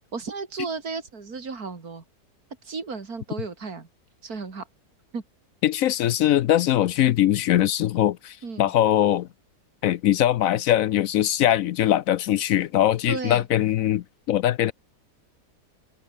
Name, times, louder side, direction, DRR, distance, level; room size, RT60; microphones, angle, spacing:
voice 1, 0.1-2.0 2.6-3.9 4.2-4.7 5.1-5.2 8.4-8.7 13.1-13.4, right 4 dB, 65° right, 3.5 m, -34 dB
voice 2, 5.6-9.3 9.8-14.7, left 12 dB, 70° left, 0.9 m, -21 dB
open air
omnidirectional pair, 1.7 m